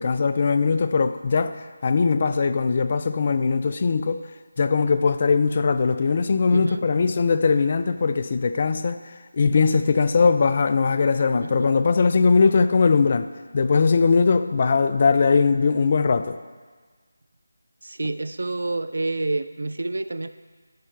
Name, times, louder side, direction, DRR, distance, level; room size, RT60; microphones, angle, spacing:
voice 1, 0.0-1.5 1.8-4.2 4.6-9.0 9.3-13.3 13.5-16.4, left 4 dB, 40° left, 0.3 m, -20 dB
voice 2, 6.5-6.9 11.4-11.7 17.8-20.3, right 2 dB, 65° right, 0.4 m, -28 dB
10.5 x 6.7 x 3.2 m
figure-of-eight pair, 160°, 0 cm